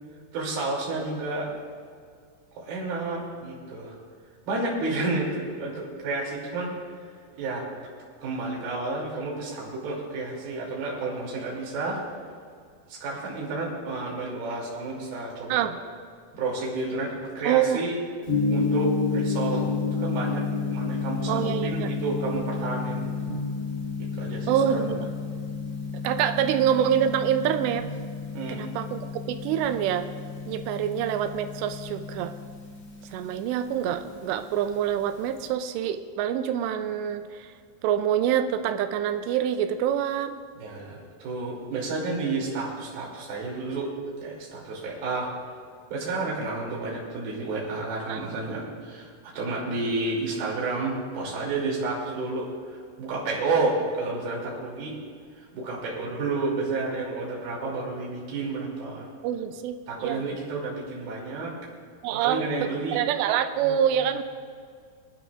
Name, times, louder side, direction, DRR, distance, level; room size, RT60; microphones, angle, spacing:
voice 1, 0.3-1.6 2.6-3.9 4.5-6.7 7.4-7.7 8.2-12.0 12.9-15.7 16.3-17.9 18.5-23.1 24.2-24.9 28.3-28.6 40.6-43.9 44.2-45.3 45.9-49.1 49.3-54.9 55.5-59.1 59.9-61.5 62.1-63.0 63.6-63.9, right 3 dB, 60° right, -4 dB, 4.6 m, -31 dB
voice 2, 17.5-17.8 21.3-21.9 24.5-25.1 26.0-27.9 28.5-30.1 30.5-32.3 33.1-37.5 37.8-40.4 48.1-48.3 59.2-60.3 62.0-64.2, right 9 dB, 90° right, 9 dB, 2.8 m, -26 dB
Gong, 18.3-35.5, left 4 dB, 40° left, 1.3 m, -31 dB
24.5 x 11.5 x 2.5 m, 2.1 s
omnidirectional pair, 4.9 m